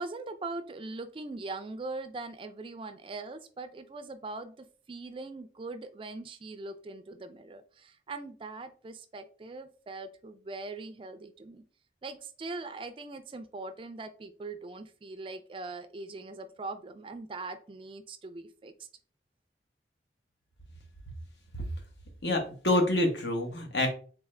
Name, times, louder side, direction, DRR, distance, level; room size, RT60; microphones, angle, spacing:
voice 1, 0.0-11.6 12.0-18.9, right 3 dB, 30° right, 11 dB, 0.3 m, -41 dB
voice 2, 22.2-23.9, left 1 dB, 70° left, 3 dB, 1.1 m, -27 dB
3.7 x 3.6 x 3.3 m, 0.41 s
head